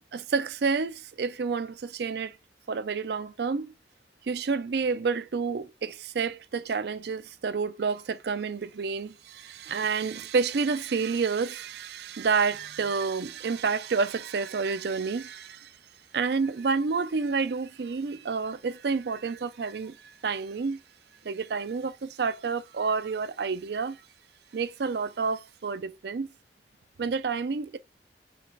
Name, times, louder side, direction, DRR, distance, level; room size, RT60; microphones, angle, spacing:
voice 1, 0.1-2.4 2.7-3.7 4.2-15.8 16.1-20.8 21.2-24.0 24.5-26.3 27.0-27.8, right 5 dB, 60° right, 0.4 m, -29 dB
5.2 x 2.4 x 3.3 m
head